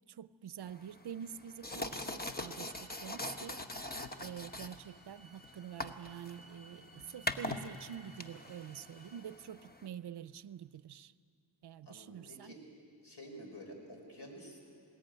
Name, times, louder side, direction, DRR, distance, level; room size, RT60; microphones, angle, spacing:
voice 1, 0.1-3.8 4.2-11.1 11.6-12.5, right 9 dB, 65° right, 16 dB, 0.6 m, -47 dB
sound 1, 0.6-9.9, left 1 dB, 20° left, 1.0 m, -43 dB
sound 2, 2.1-9.2, right 1 dB, 10° right, 4.3 m, -62 dB
voice 2, 2.9-3.4 11.8-12.6 13.0-14.6, equal, 65° left, 1 dB, 5.0 m, -51 dB
20.0 x 18.5 x 9.1 m, 2.4 s
wide cardioid pair, 90°, 43 cm